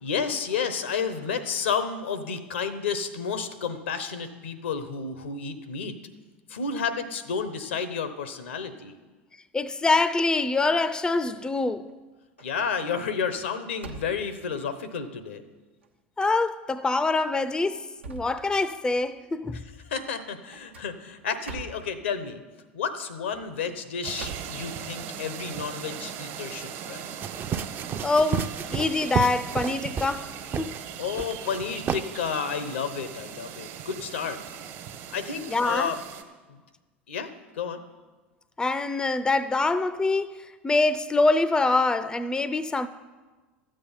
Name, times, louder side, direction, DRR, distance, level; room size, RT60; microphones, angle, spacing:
voice 1, 0.0-6.0 6.5-9.0 12.4-15.4 19.9-22.4 22.7-27.1 31.0-34.4 35.1-36.0 36.5-36.6 37.1-37.8, left 6 dB, 75° left, 1.0 m, -31 dB
voice 2, 9.5-11.9 16.2-19.6 28.0-30.8 35.5-35.9 38.6-42.9, left 3 dB, 15° left, 0.5 m, -25 dB
sound 1, 11.6-11.9 12.4-12.6 13.0-14.6 15.2-15.3 15.8-15.9 16.8-17.1 17.5-19.0 20.5-22.0 23.1-25.3, right 5 dB, 85° right, 1.0 m, -44 dB
sound 2, 24.0-36.2, right 9 dB, 55° right, 1.4 m, -39 dB
sound 3, 27.2-30.2 30.5-30.8 31.2-31.6 31.9-32.0, right 7 dB, 35° right, 0.6 m, -30 dB
13.0 x 7.8 x 5.6 m
hypercardioid pair, 80°, 6 cm